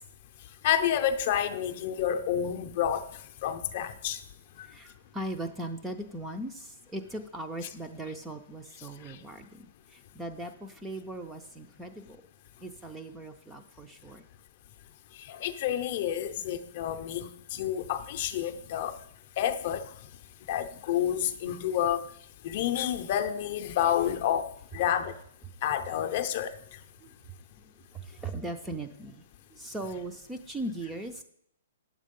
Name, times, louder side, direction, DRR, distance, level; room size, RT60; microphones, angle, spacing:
voice 1, 0.6-3.1 3.4-4.2 4.6-4.7 15.3-19.0 19.4-19.8 20.5-22.1 22.4-25.1 25.6-26.5, left 10 dB, 35° left, 8 dB, 0.6 m, -29 dB
voice 2, 4.6-12.2 12.6-14.2 27.0-27.1 27.6-31.2, right 1 dB, 5° right, 5 dB, 0.4 m, -39 dB
9.2 x 7.4 x 5.3 m, 0.71 s
hypercardioid pair, 175°, 0 cm